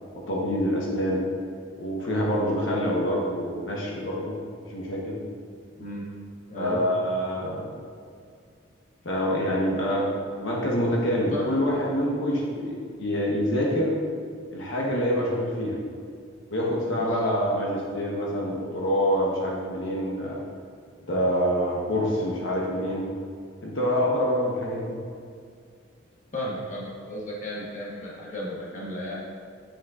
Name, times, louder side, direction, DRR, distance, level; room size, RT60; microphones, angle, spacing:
voice 1, 0.1-1.2 1.8-4.4 4.7-5.2 6.5-7.7 9.0-14.0 14.5-15.8 16.5-20.4 21.1-23.1 23.6-25.0, equal, 65° left, -3 dB, 0.9 m, -26 dB
voice 2, 5.8-6.1 6.5-6.8 11.3-11.4 17.0-17.4 26.3-29.2, left 1 dB, 40° left, -5 dB, 1.1 m, -34 dB
8.8 x 5.0 x 2.4 m, 2.2 s
head